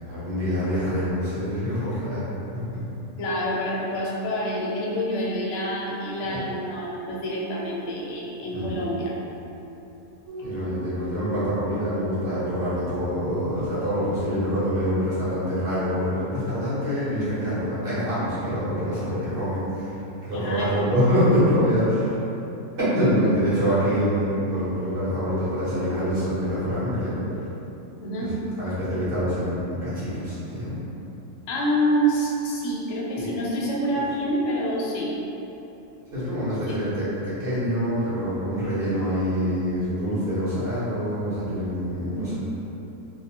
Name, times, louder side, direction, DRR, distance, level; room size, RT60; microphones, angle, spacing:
voice 1, 0.0-2.2 2.5-2.8 6.2-6.4 8.5-8.8 10.4-19.9 20.2-22.2 22.9-27.2 28.2-28.3 28.6-30.8 33.1-33.4 36.1-42.4, equal, 45° right, -13 dB, 1.2 m, -25 dB
voice 2, 3.2-9.1 20.3-20.9 28.0-28.4 31.5-35.1 36.7-36.8 41.9-42.3, equal, 65° left, -4 dB, 0.8 m, -27 dB
sound 1, 10.3-14.4, right 3 dB, 90° right, 1.1 m, -38 dB
2.7 x 2.3 x 2.8 m, 3.0 s
omnidirectional pair, 1.5 m